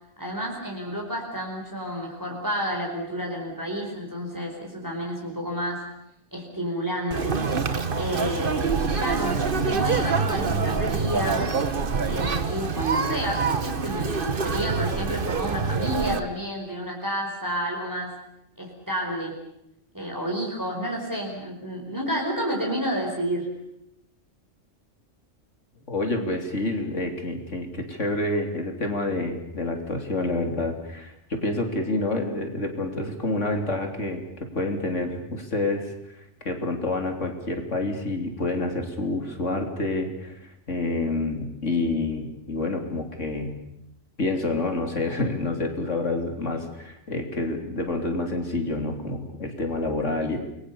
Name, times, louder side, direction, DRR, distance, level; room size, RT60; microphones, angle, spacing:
voice 1, 0.2-5.9 6.3-7.4 7.9-11.5 12.0-18.2 18.6-19.3 19.9-23.6, equal, 15° right, 0 dB, 4.9 m, -30 dB
Conversation, 7.1-16.2, right 5 dB, 45° right, 1.4 m, -26 dB
voice 2, 25.9-34.2 34.5-43.6 44.2-50.4, left 2 dB, 70° left, 4 dB, 3.7 m, -28 dB
29.0 x 22.0 x 7.1 m, 0.79 s
omnidirectional pair, 1.3 m